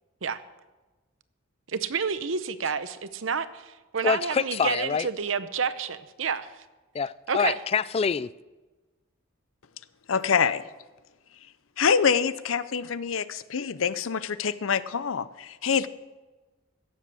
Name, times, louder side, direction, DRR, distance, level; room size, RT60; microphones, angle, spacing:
voice 1, 1.7-6.6 7.3-7.6, right 6 dB, 75° right, 0.8 m, -29 dB
voice 2, 4.0-5.1 6.9-8.3, left 6 dB, 30° left, 0.3 m, -26 dB
voice 3, 10.1-10.6 11.8-15.9, left 6 dB, 85° left, 0.6 m, -25 dB
16.5 x 7.4 x 7.0 m
head